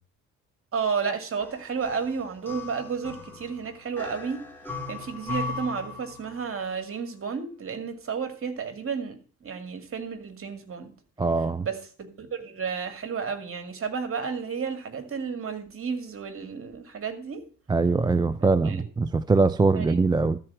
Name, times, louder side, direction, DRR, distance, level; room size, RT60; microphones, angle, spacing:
voice 1, 0.7-4.4 4.9-10.9 11.6-17.4 18.6-18.8 19.7-20.0, right 6 dB, 45° right, 2.2 m, -32 dB
sound 1, 1.4-6.6, left 3 dB, 5° left, 2.3 m, -38 dB
voice 2, 11.2-11.7 17.7-20.4, right 3 dB, 15° right, 0.4 m, -22 dB
13.0 x 4.6 x 7.7 m
cardioid pair, 90°, 30 cm